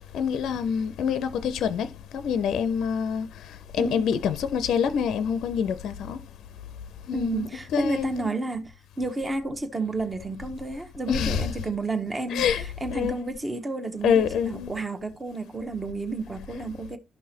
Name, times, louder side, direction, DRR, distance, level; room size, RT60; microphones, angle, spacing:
voice 1, 0.1-6.2 7.1-8.3 11.1-11.5 12.3-12.6 12.9-13.1 14.0-14.7, left 7 dB, 60° left, 0.5 m, -26 dB
voice 2, 3.8-4.1 7.1-17.0, right 2 dB, 25° right, 1.1 m, -31 dB
12.0 x 5.4 x 2.9 m
figure-of-eight pair, 40°, 0 cm